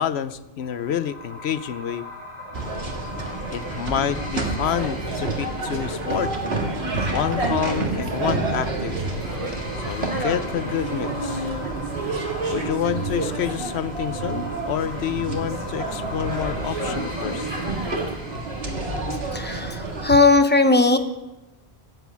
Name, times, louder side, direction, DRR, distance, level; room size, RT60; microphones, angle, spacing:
voice 1, 0.0-2.0 3.5-6.3 7.1-9.0 9.9-11.5 12.5-17.5, left 9 dB, 80° left, 14 dB, 1.0 m, -28 dB
sound 1, 0.6-19.2, left 1 dB, 25° left, 3.7 m, -40 dB
sound 2, 2.5-20.1, right 2 dB, 70° right, 2.1 m, -29 dB
sound 3, 4.6-13.7 14.1-18.1, right 1 dB, 35° right, 1.9 m, -33 dB
voice 2, 19.3-21.0, left 3 dB, 10° left, 7 dB, 0.9 m, -17 dB
14.0 x 8.3 x 8.5 m, 1.0 s
omnidirectional pair, 1.1 m